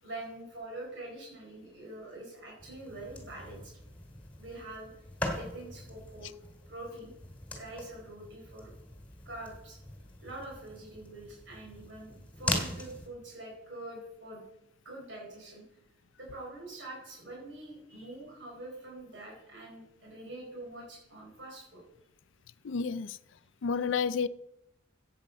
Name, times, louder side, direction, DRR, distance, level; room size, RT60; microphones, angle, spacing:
voice 1, 0.0-3.7 4.4-4.9 5.3-6.3 6.7-7.1 7.5-8.7 9.2-9.8 10.2-14.4 14.8-15.6 16.2-21.8, right 2 dB, 65° right, 4.3 m, -45 dB
sound 1, 2.6-13.1, left 1 dB, 10° left, 2.4 m, -41 dB
voice 2, 22.6-23.2 23.6-24.3, left 5 dB, 80° left, 0.5 m, -30 dB
14.5 x 8.6 x 5.2 m
head